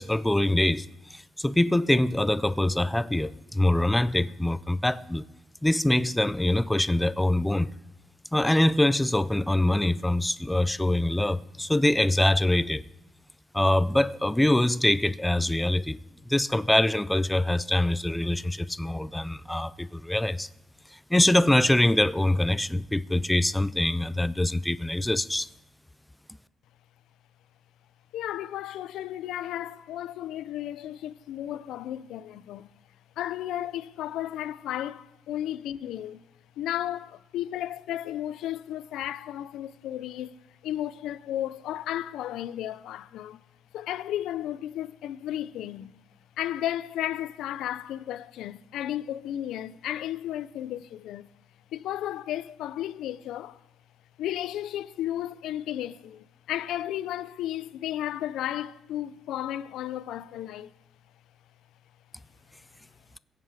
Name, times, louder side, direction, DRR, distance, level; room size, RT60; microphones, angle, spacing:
voice 1, 0.0-5.3 5.6-7.7 8.3-12.8 13.5-16.0 16.3-20.5 20.9-25.5, left 1 dB, 5° left, 0.4 m, -24 dB
voice 2, 28.1-32.7 33.2-36.2 36.6-40.3 40.6-43.4 43.7-45.9 46.4-51.3 51.7-53.6 54.2-60.7, left 12 dB, 90° left, 0.4 m, -33 dB
22.0 x 7.5 x 4.8 m
cardioid pair, 115°, 0 cm